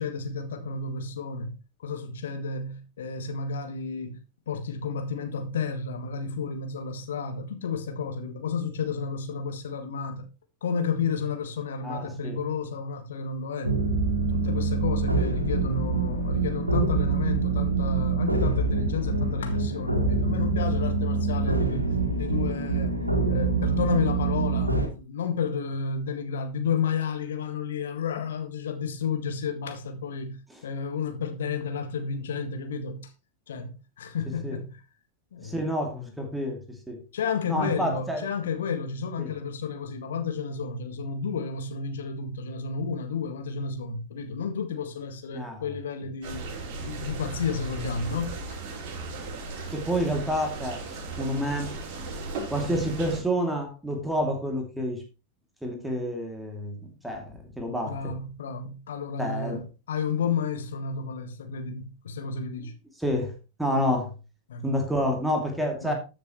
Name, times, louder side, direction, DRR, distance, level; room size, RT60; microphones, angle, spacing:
voice 1, 0.0-4.2 4.5-10.3 10.6-13.8 14.3-33.1 33.5-34.8 35.3-35.6 37.1-46.5 46.8-48.6 57.8-62.7 64.5-64.7 65.8-65.9, left 5 dB, 65° left, 1.7 m, -31 dB
voice 2, 11.8-12.4 34.4-34.6 35.4-37.0 37.5-38.2 39.2-39.3 45.3-45.6 49.7-50.8 51.2-51.7 52.5-55.0 55.6-58.1 59.2-59.6 63.0-63.3 63.6-64.1 64.6-65.9, equal, 5° right, 2.7 m, -29 dB
sound 1, 13.6-24.9, right 3 dB, 85° right, 2.3 m, -25 dB
sound 2, 46.2-53.2, right 3 dB, 45° right, 4.4 m, -36 dB
13.5 x 7.3 x 3.1 m
figure-of-eight pair, 90°, 0 cm